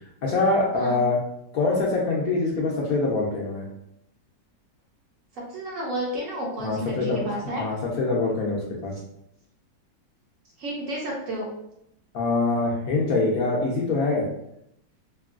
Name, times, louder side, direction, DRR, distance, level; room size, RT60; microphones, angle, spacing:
voice 1, 0.2-1.2 1.5-3.6 6.6-8.9 12.1-14.2, left 3 dB, 70° left, -3 dB, 0.9 m, -24 dB
voice 2, 5.4-7.6 10.6-11.5, right 1 dB, 65° right, -2 dB, 0.8 m, -31 dB
3.0 x 2.6 x 2.4 m, 0.77 s
omnidirectional pair, 2.0 m